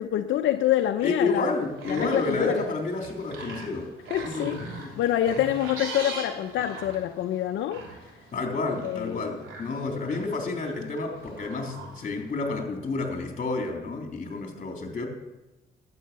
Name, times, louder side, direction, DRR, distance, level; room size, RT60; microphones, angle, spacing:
voice 1, 0.0-1.5 1.9-2.6 4.1-4.6 5.0-8.0 8.8-9.3, left 12 dB, 75° left, 6 dB, 0.7 m, -26 dB
voice 2, 1.0-3.9 4.2-4.5 4.8-5.0 5.4-5.5 8.3-15.1, left 3 dB, 40° left, 2 dB, 3.4 m, -30 dB
sound 1, 1.5-12.3, right 3 dB, 85° right, 3.2 m, -42 dB
12.0 x 8.8 x 6.8 m, 1.0 s
cardioid pair, 90°, 20 cm